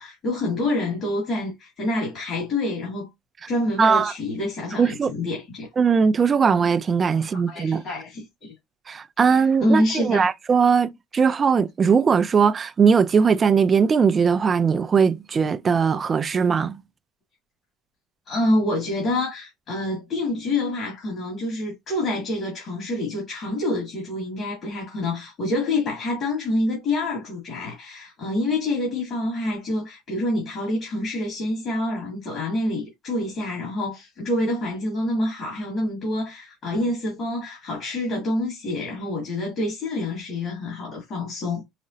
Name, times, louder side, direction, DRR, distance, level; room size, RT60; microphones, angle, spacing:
voice 1, 0.0-3.1 3.5-5.7 7.3-8.5 9.3-10.3 18.3-41.6, left 1 dB, 45° left, 2.1 m, -27 dB
voice 2, 3.8-4.1 4.8-5.1 5.8-7.8 8.9-16.8, right 6 dB, 30° right, 0.4 m, -20 dB
4.8 x 2.1 x 2.7 m
cardioid pair, 120°, 0 cm